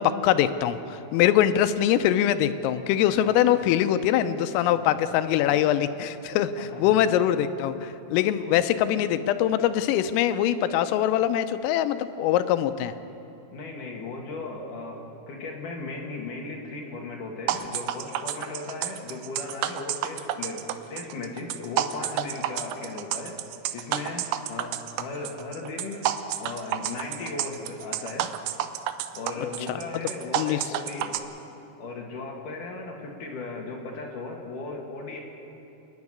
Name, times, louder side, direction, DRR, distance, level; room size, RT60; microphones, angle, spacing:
voice 1, 0.0-12.9 30.3-30.6, left 11 dB, 85° left, 11 dB, 3.4 m, -23 dB
voice 2, 6.6-7.0 13.5-23.4 23.7-26.0 26.4-28.3 29.1-31.2 31.8-35.2, left 3 dB, 55° left, 0 dB, 2.6 m, -37 dB
sound 1, 17.5-31.2, right 12 dB, 90° right, 2.4 m, -30 dB
27.5 x 10.5 x 9.6 m, 2.9 s
omnidirectional pair, 5.8 m